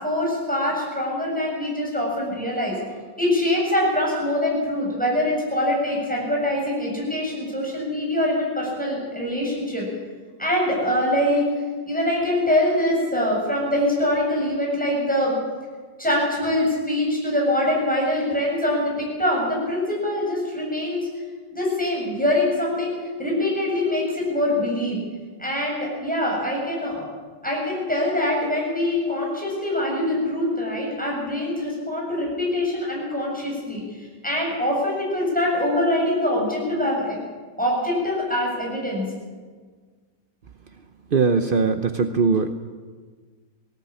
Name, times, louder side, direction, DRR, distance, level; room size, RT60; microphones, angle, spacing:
voice 1, 0.0-2.8 3.2-9.9 10.4-11.4 11.9-15.3 16.0-21.1 21.5-25.0 25.4-27.1 27.4-33.8 34.2-37.2 37.6-39.1, left 1 dB, 5° left, -3 dB, 7.6 m, -24 dB
voice 2, 41.1-42.5, right 4 dB, 55° right, 8 dB, 0.6 m, -20 dB
18.5 x 18.0 x 8.6 m, 1.5 s
omnidirectional pair, 2.0 m